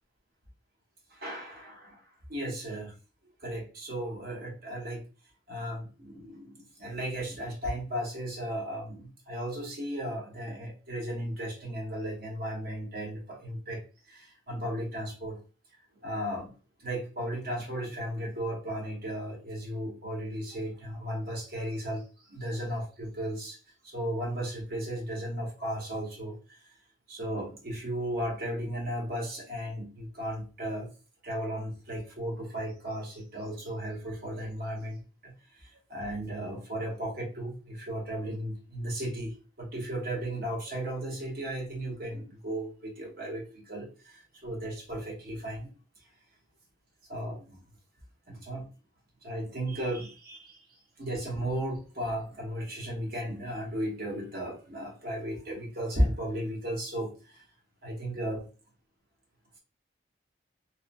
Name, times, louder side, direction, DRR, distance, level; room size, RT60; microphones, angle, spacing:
voice 1, 1.1-2.0 2.3-2.9 3.4-5.0 5.5-13.8 14.1-15.4 16.0-16.5 16.8-23.6 23.8-26.6 27.1-30.9 31.2-45.7 47.1-47.6 48.3-48.6 49.2-57.4 57.8-58.5, equal, 50° right, 0 dB, 0.9 m, -35 dB
2.8 x 2.1 x 2.4 m, 0.34 s
head